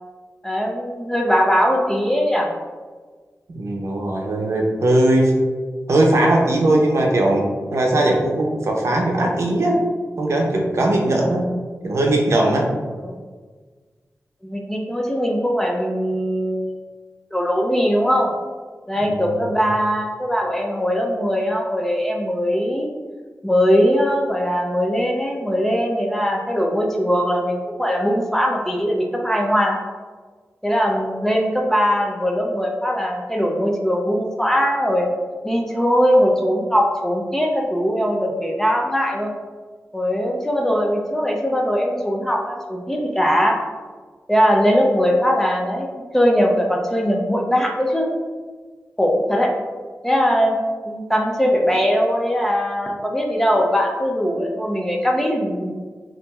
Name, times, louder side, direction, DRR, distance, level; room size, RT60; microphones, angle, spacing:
voice 1, 0.4-2.5 13.0-13.2 14.4-16.8 17.3-18.3 18.9-22.9 23.4-29.8 30.6-35.1 35.4-39.3 39.9-43.6 44.3-48.1 49.0-49.5 50.0-50.6 50.9-55.7, equal, 5° left, 0 dB, 0.5 m, -20 dB
voice 2, 3.5-5.3 5.9-7.5 7.7-9.8 10.2-11.5 11.8-12.7 19.0-19.5, right 1 dB, 65° right, 0 dB, 0.7 m, -19 dB
5.8 x 2.6 x 2.3 m, 1.5 s
wide cardioid pair, 120°, 5 cm